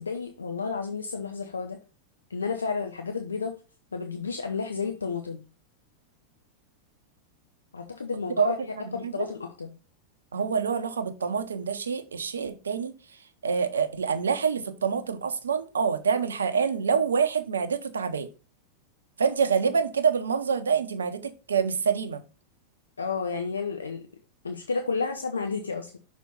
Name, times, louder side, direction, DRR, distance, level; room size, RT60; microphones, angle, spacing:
voice 1, 0.0-1.8 2.3-3.5 3.9-5.4 7.7-8.6 8.9-9.7 23.0-24.0 24.4-26.0, left 5 dB, 75° left, 0.6 m, -31 dB
voice 2, 8.8-9.3 10.3-12.9 13.4-18.3 19.2-22.2, right 6 dB, 70° right, 0.7 m, -26 dB
6.1 x 4.2 x 4.0 m
figure-of-eight pair, 90°, 0 cm